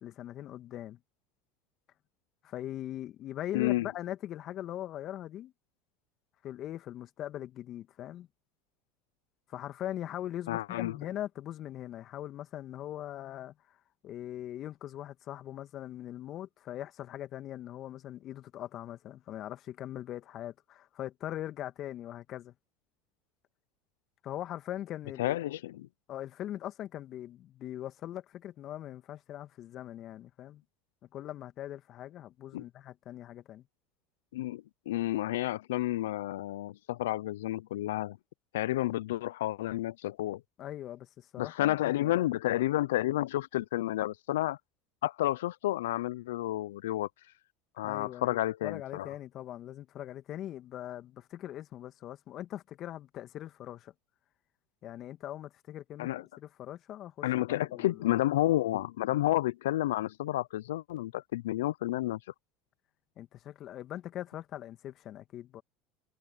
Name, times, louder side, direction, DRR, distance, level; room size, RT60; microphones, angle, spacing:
voice 1, 0.0-1.0 2.4-5.5 6.4-8.3 9.5-13.5 14.0-22.5 24.2-25.4 26.1-30.6 31.1-33.6 40.6-42.4 47.8-53.9 54.8-58.1 63.2-65.6, left 12 dB, 50° left, 2.1 m, -41 dB
voice 2, 3.5-3.9 10.5-11.0 25.2-25.9 32.5-32.6 34.3-38.2 38.5-40.4 41.4-44.6 45.0-47.1 47.8-49.1 56.0-56.2 57.2-62.2, left 15 dB, 80° left, 0.6 m, -30 dB
hypercardioid pair, 80°, 0 cm